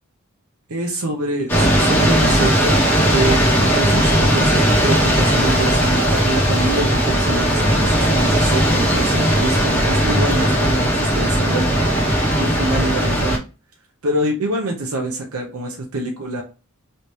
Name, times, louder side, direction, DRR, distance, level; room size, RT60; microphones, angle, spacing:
voice 1, 0.7-2.8 3.1-11.8 12.4-13.4 14.0-16.4, right 1 dB, 80° right, 0 dB, 0.7 m, -25 dB
sound 1, 1.5-13.4, equal, 10° left, 1.0 m, -17 dB
3.2 x 2.7 x 3.1 m, 0.32 s
head